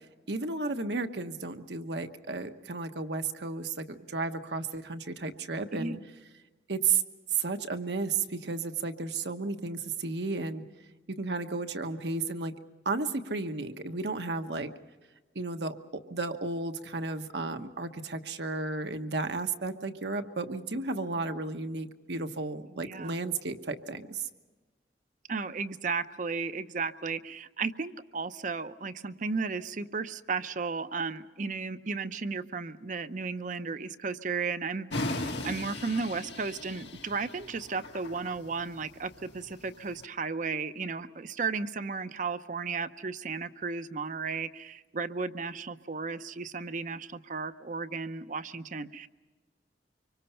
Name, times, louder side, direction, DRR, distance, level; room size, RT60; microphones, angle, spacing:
voice 1, 0.3-6.0 6.7-7.0 7.3-10.6 11.1-12.5 12.8-14.7 15.3-15.7 16.1-24.3, right 4 dB, 75° right, 7 dB, 1.2 m, -33 dB
voice 2, 5.7-6.0 22.7-23.2 25.3-49.1, right 4 dB, 45° right, 12 dB, 0.7 m, -34 dB
sound 1, 34.9-40.0, left 2 dB, 80° left, 1.9 m, -38 dB
25.0 x 24.0 x 5.7 m, 1.2 s
head